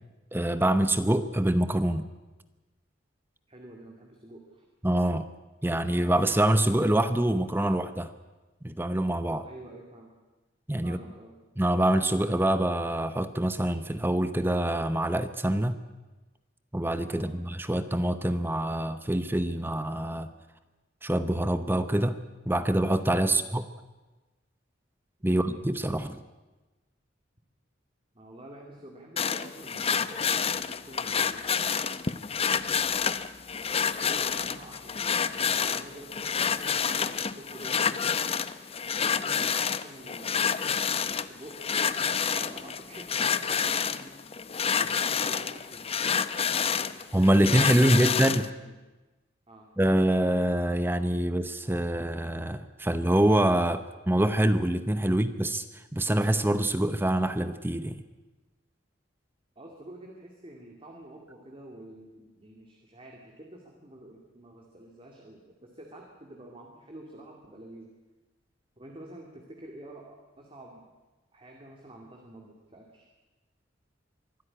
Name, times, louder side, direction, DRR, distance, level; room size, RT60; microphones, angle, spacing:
voice 1, 0.3-2.0 4.8-5.3 5.6-8.1 8.6-9.4 10.7-11.0 11.6-15.8 16.7-20.3 21.0-22.2 22.5-23.6 25.2-26.2 47.1-48.4 49.8-55.6 55.9-58.0, right 1 dB, 10° right, 11 dB, 0.8 m, -25 dB
voice 2, 3.5-4.6 9.4-10.1 10.8-11.4 17.1-17.4 23.3-23.4 25.2-25.5 28.1-31.9 33.7-38.1 38.9-40.6 41.1-41.7 42.3-44.2 44.8-46.1 46.5-47.0 48.4-48.7 49.5-49.7 59.6-67.9 68.8-70.9 71.3-73.1, right 1 dB, 30° right, 1 dB, 2.6 m, -48 dB
sound 1, 29.2-48.5, left 7 dB, 30° left, 0.7 m, -28 dB
24.0 x 13.0 x 9.9 m, 1.2 s
head